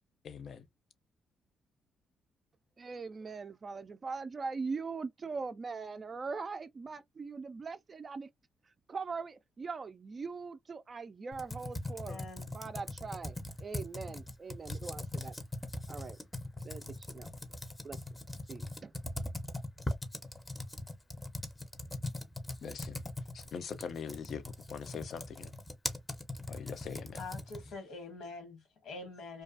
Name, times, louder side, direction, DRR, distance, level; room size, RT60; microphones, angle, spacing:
voice 1, 0.2-0.6 22.6-23.0 23.3-24.4 24.7-25.5 26.5-27.2, left 6 dB, 60° left, 0.4 m, -42 dB
voice 2, 2.8-8.3 8.9-12.2 12.5-15.3 15.9-16.2 16.6-17.3 17.8-18.0 18.5-18.9, right 4 dB, 35° right, 0.3 m, -41 dB
Computer keyboard, 11.3-27.7, left 1 dB, 10° left, 0.6 m, -41 dB
voice 3, 12.1-12.5 27.2-29.4, left 3 dB, 80° left, 1.3 m, -45 dB
2.4 x 2.3 x 2.4 m
cardioid pair, 90°, 0 cm